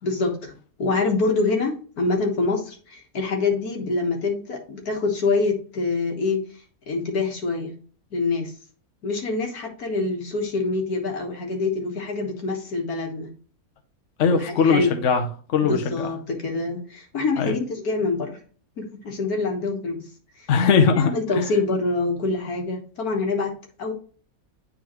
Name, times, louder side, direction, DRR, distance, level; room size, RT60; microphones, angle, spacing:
voice 1, 0.0-6.4 6.9-7.7 8.1-8.5 9.0-13.3 14.3-14.9 15.6-18.4 18.8-20.0 20.4-20.5 20.9-23.5 23.8-23.9, left 3 dB, 85° left, 2 dB, 1.9 m, -25 dB
voice 2, 14.2-16.1 17.4-17.5 20.5-21.1 21.4-21.5, left 5 dB, 60° left, 5 dB, 1.1 m, -20 dB
9.2 x 3.8 x 3.0 m, 0.41 s
omnidirectional pair, 1.5 m